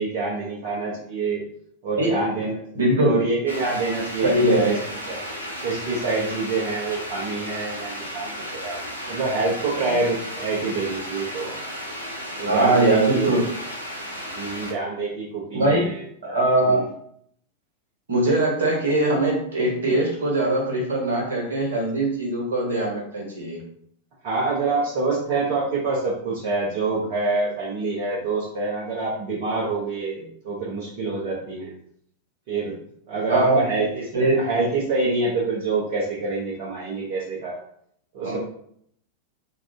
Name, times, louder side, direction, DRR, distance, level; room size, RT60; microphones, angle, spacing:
voice 1, 0.0-1.4 1.8-2.6 2.9-5.2 5.6-8.8 9.1-11.5 12.4-13.4 14.3-16.9 24.2-31.8 32.5-32.8 33.1-37.6 38.1-38.4, right 3 dB, 50° right, -5 dB, 0.8 m, -26 dB
voice 2, 2.7-3.2 4.2-4.7 12.5-13.4 15.5-15.8 16.3-16.8 18.1-23.6 33.3-33.6 34.1-34.4 38.2-38.4, right 1 dB, 65° right, -2 dB, 1.2 m, -21 dB
sound 1, 3.5-14.7, equal, 90° right, 0.6 m, -34 dB
2.6 x 2.5 x 3.5 m, 0.67 s
figure-of-eight pair, 90°, 0 cm